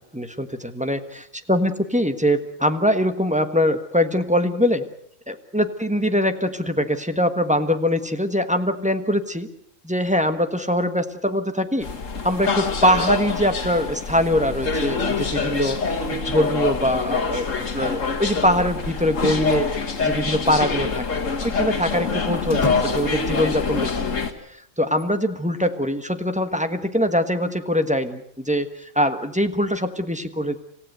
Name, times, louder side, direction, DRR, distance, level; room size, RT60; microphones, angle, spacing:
voice 1, 0.1-1.0 1.5-4.8 5.3-9.5 9.8-11.9 12.2-21.0 21.4-23.9 24.5-30.6, equal, 5° right, 7 dB, 1.2 m, -23 dB
sound 1, 11.8-24.3, left 4 dB, 85° left, 2.1 m, -25 dB
sound 2, 22.4-23.3 24.9-25.8, left 3 dB, 25° left, 1.2 m, -32 dB
27.0 x 15.5 x 8.0 m, 0.72 s
omnidirectional pair, 1.3 m